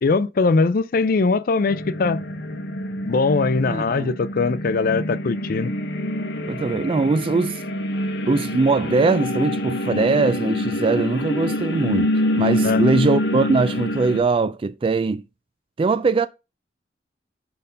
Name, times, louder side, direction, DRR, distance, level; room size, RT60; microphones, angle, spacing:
voice 1, 0.0-2.2 3.0-5.7 12.6-12.8, left 4 dB, 55° left, 0.4 m, -21 dB
sound 1, 1.7-14.2, left 1 dB, 75° left, 1.1 m, -26 dB
voice 2, 3.7-4.2 6.5-7.6 8.3-12.1 12.4-15.2 15.8-16.3, right 3 dB, 30° right, 0.3 m, -21 dB
5.2 x 4.4 x 5.4 m
head